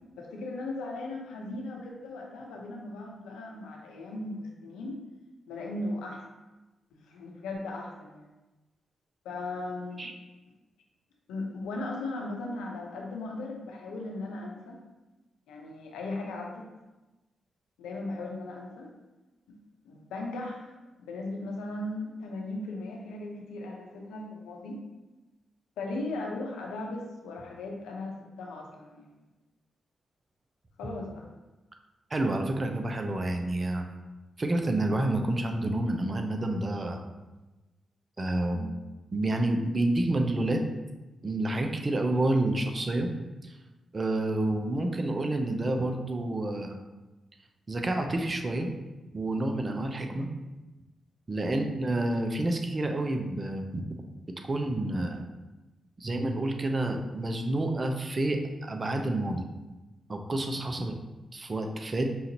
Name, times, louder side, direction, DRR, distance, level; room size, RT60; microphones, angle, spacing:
voice 1, 0.2-5.0 5.5-6.2 6.9-8.2 9.2-10.1 11.3-14.8 15.5-16.6 17.8-18.9 19.5-19.6 19.8-20.7 21.0-24.8 25.8-29.1 30.8-31.3 38.5-38.7 51.4-51.7, left 2 dB, 85° left, 0 dB, 0.6 m, -37 dB
voice 2, 32.1-33.9 34.4-37.0 38.2-38.6 39.1-40.6 41.2-43.1 43.4-43.6 43.9-46.8 47.7-48.7 49.1-50.3 51.3-53.8 54.5-55.2 56.0-59.5 60.1-61.0 61.3-62.1, right 1 dB, 40° right, 4 dB, 0.6 m, -29 dB
5.6 x 2.5 x 2.8 m, 1.1 s
supercardioid pair, 45°, 0 cm